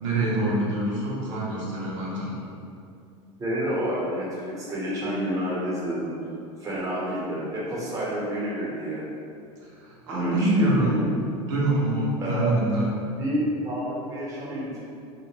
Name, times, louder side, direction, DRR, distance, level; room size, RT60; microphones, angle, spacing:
voice 1, 0.0-2.3 9.8-11.0 11.5-12.9, right 1 dB, 80° right, -6 dB, 0.6 m, -25 dB
voice 2, 3.4-6.1 6.6-9.0 10.1-11.1 12.2-12.5 13.2-14.8, equal, 20° right, -6 dB, 0.9 m, -29 dB
2.2 x 2.1 x 3.1 m, 2.4 s
hypercardioid pair, 95°, 15 cm